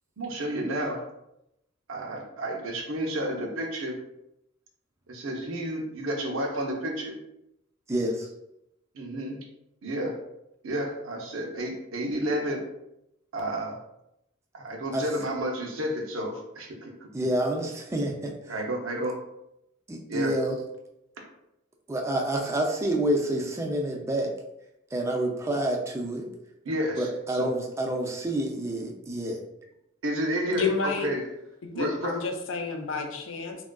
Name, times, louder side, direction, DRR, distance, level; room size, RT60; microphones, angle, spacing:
voice 1, 0.2-1.0 1.9-4.0 5.1-7.2 8.9-9.4 9.8-10.2 10.6-12.6 13.3-13.8 14.5-17.1 18.5-19.2 20.1-20.3 26.6-27.1 27.3-27.5 30.0-30.7 31.0-31.2 31.7-32.2, right 1 dB, 90° right, 1 dB, 0.6 m, -31 dB
voice 2, 7.9-8.3 14.9-15.1 17.1-18.3 19.9-20.6 21.9-24.3 24.9-26.3 27.0-29.4, right 1 dB, 15° right, 1 dB, 0.4 m, -28 dB
voice 3, 30.6-31.1 31.8-33.6, left 4 dB, 70° left, 3 dB, 0.4 m, -30 dB
3.5 x 2.3 x 2.2 m, 0.84 s
head